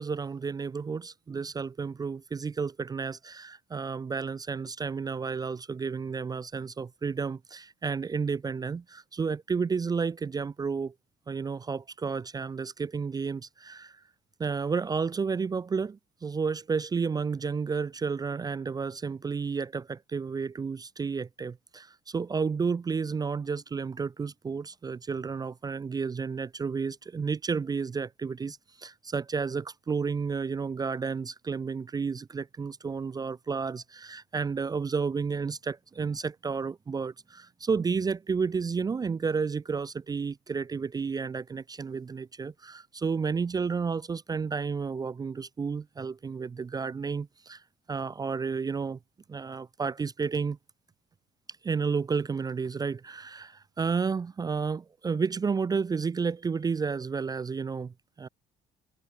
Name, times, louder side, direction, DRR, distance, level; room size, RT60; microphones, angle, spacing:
voice 1, 0.0-10.9 11.3-14.0 14.4-47.6 47.9-49.0 49.3-50.6 51.6-58.3, right 5 dB, 20° right, 0.5 m, -31 dB
cardioid pair, 110°, 17 cm